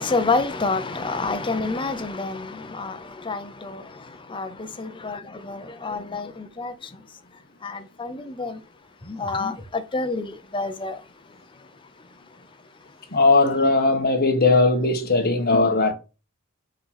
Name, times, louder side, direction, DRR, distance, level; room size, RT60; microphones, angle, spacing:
voice 1, 0.0-7.0 7.6-8.6 9.0-11.0, left 3 dB, 20° left, 0.7 m, -28 dB
voice 2, 13.1-15.9, left 3 dB, 45° left, 1.3 m, -19 dB
5.4 x 3.9 x 5.8 m
head